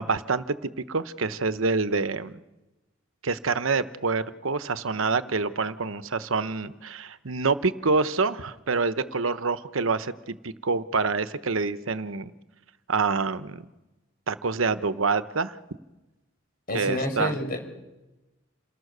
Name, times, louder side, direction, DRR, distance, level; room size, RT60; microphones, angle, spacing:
voice 1, 0.0-2.4 3.2-12.3 12.9-13.6 14.3-15.5 16.7-17.3, right 4 dB, 85° right, 12 dB, 1.0 m, -27 dB
voice 2, 16.7-17.6, left 1 dB, 45° left, 5 dB, 5.0 m, -28 dB
28.0 x 17.5 x 6.7 m, 1.0 s
head